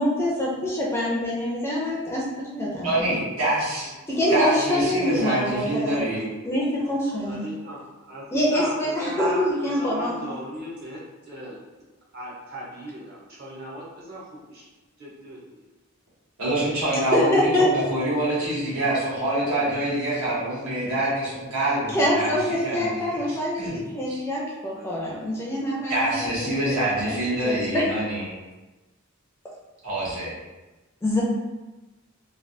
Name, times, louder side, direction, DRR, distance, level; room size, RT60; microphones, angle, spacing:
voice 1, 0.0-3.2 4.1-6.0 6.4-7.4 8.3-10.2 16.9-17.7 21.9-26.5 27.0-27.2 27.4-27.9 31.0-31.2, left 1 dB, 10° left, -4 dB, 0.4 m, -25 dB
voice 2, 2.8-3.9 4.3-6.3 16.4-23.7 24.1-24.2 25.9-28.4 29.8-30.3, right 1 dB, 80° right, -8 dB, 1.3 m, -26 dB
voice 3, 4.2-5.1 7.2-11.8 12.1-14.7 15.0-15.6 24.7-25.2 25.5-25.7, equal, 45° right, -6 dB, 0.8 m, -36 dB
3.2 x 2.3 x 2.6 m, 1.1 s
head